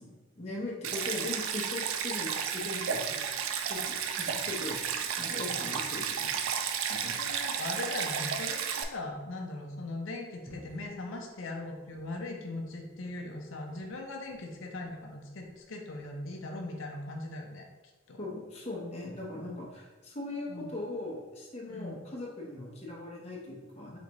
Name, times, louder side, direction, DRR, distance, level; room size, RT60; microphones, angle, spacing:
voice 1, 0.0-3.2 3.7-7.2 18.2-24.0, left 2 dB, 30° left, -4 dB, 0.8 m, -40 dB
Stream, 0.8-8.8, right 7 dB, 80° right, 0.4 m, -33 dB
voice 2, 7.2-17.7 18.1-18.2 20.5-20.7 21.7-22.0, left 2 dB, 70° left, 2 dB, 0.5 m, -39 dB
sound 1, 10.5-15.1 15.4-16.7, left 1 dB, 30° right, 1.2 m, -56 dB
4.0 x 3.4 x 3.0 m, 1.2 s
head